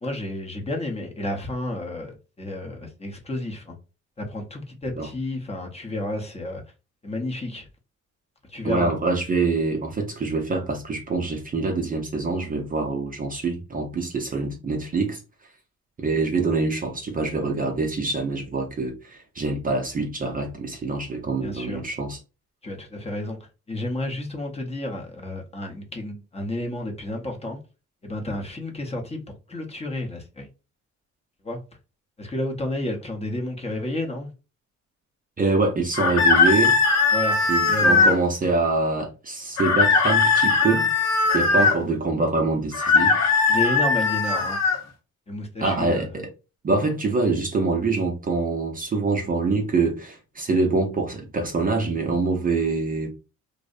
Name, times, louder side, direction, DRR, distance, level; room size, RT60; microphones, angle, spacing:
voice 1, 0.0-3.8 4.2-6.6 7.0-7.7 8.5-8.9 21.4-21.8 22.6-23.4 23.7-27.6 28.0-30.5 31.4-31.6 32.2-34.3 37.1-38.1 41.6-41.7 43.5-44.6 45.3-46.1, left 1 dB, 20° left, 0.7 m, -31 dB
voice 2, 8.6-15.2 16.0-22.2 35.4-36.7 37.5-40.9 41.3-43.2 45.6-46.3 46.6-53.1, right 3 dB, 30° right, 0.5 m, -25 dB
sound 1, 35.9-38.2 39.6-41.8 42.7-44.8, left 4 dB, 60° left, 0.7 m, -19 dB
2.6 x 2.0 x 2.4 m
cardioid pair, 90°, 30 cm